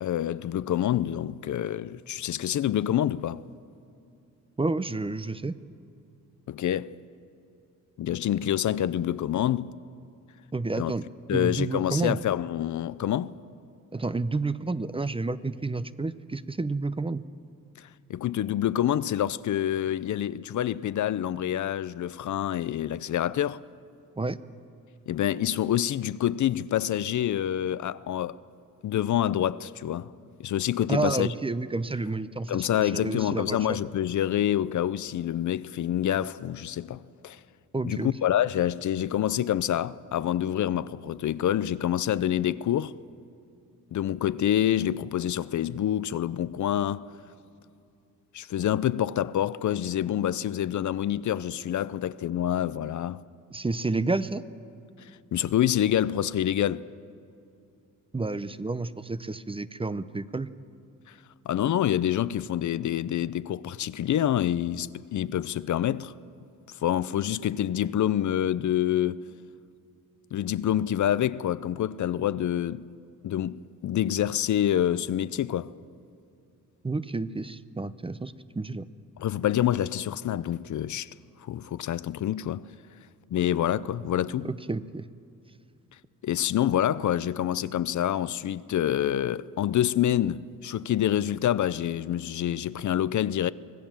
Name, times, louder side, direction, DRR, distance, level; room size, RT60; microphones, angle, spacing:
voice 1, 0.0-3.4 6.5-7.0 8.0-9.7 10.8-10.9 11.3-13.3 17.8-23.6 25.1-28.4 28.8-30.1 30.4-31.3 32.5-37.4 37.8-42.9 43.9-47.1 48.3-53.2 55.0-56.9 61.1-61.2 61.4-66.1 66.7-69.2 70.3-72.8 73.2-75.7 79.2-81.1 81.4-82.7 83.3-84.5 86.2-93.5, left 11 dB, 60° left, 0.6 m, -27 dB
voice 2, 4.6-5.6 10.5-12.2 13.9-17.2 24.2-24.4 30.9-33.6 37.7-38.1 53.5-54.5 58.1-60.5 76.8-78.9 84.4-85.1, right 3 dB, 15° right, 0.7 m, -30 dB
25.0 x 17.5 x 7.3 m
cardioid pair, 90°, 33 cm